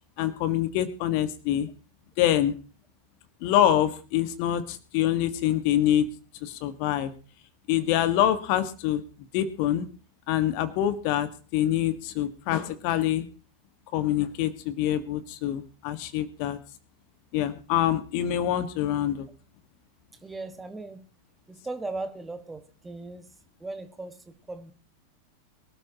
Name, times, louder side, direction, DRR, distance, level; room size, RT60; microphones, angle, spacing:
voice 1, 0.2-1.7 2.2-2.5 3.4-6.1 6.4-7.1 7.7-9.0 9.3-9.9 10.3-13.2 13.9-16.6 17.3-19.3, left 11 dB, 45° left, 11 dB, 1.6 m, -25 dB
voice 2, 20.2-21.0 21.5-23.3 23.6-24.7, right 3 dB, 10° right, 8 dB, 1.6 m, -38 dB
23.5 x 13.0 x 3.0 m, 0.36 s
figure-of-eight pair, 90°, 0 cm